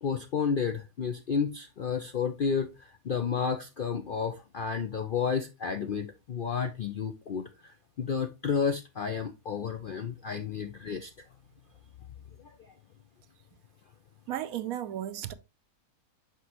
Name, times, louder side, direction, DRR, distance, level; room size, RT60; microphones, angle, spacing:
voice 1, 0.0-11.1, left 6 dB, 60° left, 0.5 m, -31 dB
voice 2, 14.3-15.3, right 11 dB, 75° right, 1.0 m, -34 dB
6.0 x 5.9 x 2.9 m
omnidirectional pair, 1.6 m